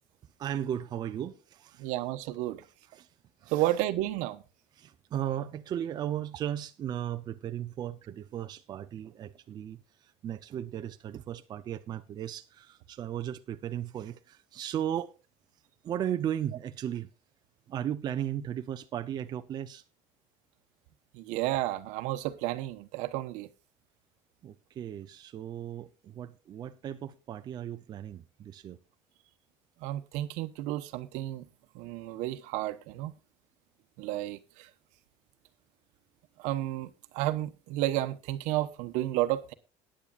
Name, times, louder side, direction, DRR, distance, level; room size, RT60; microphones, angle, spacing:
voice 1, 0.4-1.9 2.9-3.1 3.4-3.7 4.7-15.1 15.8-17.1 17.7-19.8 24.4-28.8, right 10 dB, 35° right, 0.7 m, -36 dB
voice 2, 1.8-2.6 3.5-4.4 21.1-23.5 29.8-31.4 31.7-33.1 34.0-34.7 36.4-39.5, right 15 dB, 80° right, 1.1 m, -32 dB
19.5 x 10.0 x 2.5 m
cardioid pair, 165°, 12 cm